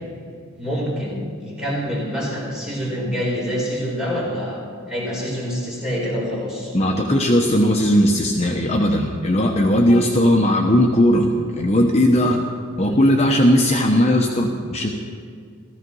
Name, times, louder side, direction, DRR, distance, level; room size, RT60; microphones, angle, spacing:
voice 1, 0.6-4.6 4.9-6.7 12.8-13.0, equal, 5° right, -5 dB, 4.3 m, -26 dB
voice 2, 6.7-12.4 12.8-14.9, equal, 30° left, 0 dB, 1.0 m, -17 dB
16.0 x 14.5 x 5.5 m, 2.2 s
head